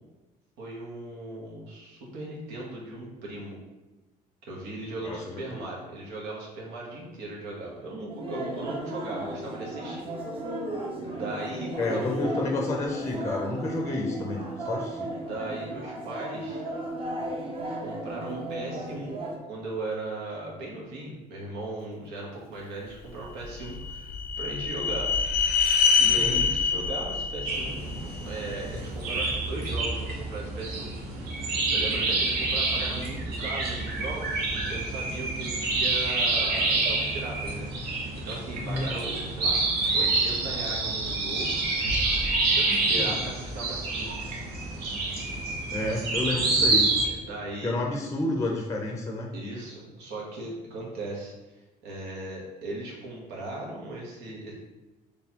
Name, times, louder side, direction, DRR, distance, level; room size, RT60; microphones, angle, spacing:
voice 1, 0.6-3.6 4.4-10.1 11.1-12.5 14.9-16.6 17.8-19.2 19.4-25.1 26.0-30.9 31.7-39.6 39.9-41.7 42.5-44.1 47.0-47.8 49.3-51.3 51.8-54.5, right 2 dB, 90° right, -3 dB, 1.2 m, -38 dB
sound 1, 8.1-19.4, right 1 dB, 35° right, 0.8 m, -35 dB
voice 2, 11.8-15.1 26.1-26.4 38.6-38.9 43.0-43.2 45.7-46.9 47.6-49.3, left 2 dB, 15° left, 0 dB, 0.5 m, -30 dB
sound 2, 23.4-28.6, left 5 dB, 70° left, 0.5 m, -25 dB
sound 3, 27.4-47.1, right 3 dB, 70° right, 0.9 m, -28 dB
4.0 x 3.1 x 2.9 m, 1.1 s
cardioid pair, 110°, 17 cm